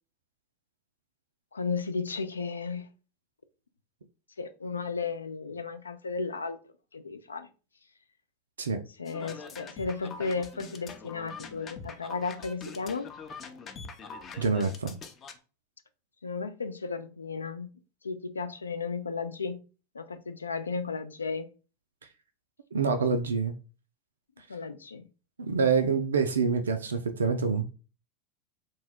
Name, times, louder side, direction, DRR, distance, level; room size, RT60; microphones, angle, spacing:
voice 1, 1.5-2.9 4.4-7.5 9.0-13.1 16.2-17.7 18.0-19.6 19.9-21.5 24.5-25.1, left 4 dB, 85° left, 0.3 m, -34 dB
sound 1, 9.1-15.3, left 4 dB, 35° left, 0.5 m, -44 dB
voice 2, 14.4-14.9 22.7-23.5 25.4-27.6, right 5 dB, 80° right, 0.3 m, -26 dB
2.7 x 2.2 x 3.4 m
figure-of-eight pair, 85°, 0 cm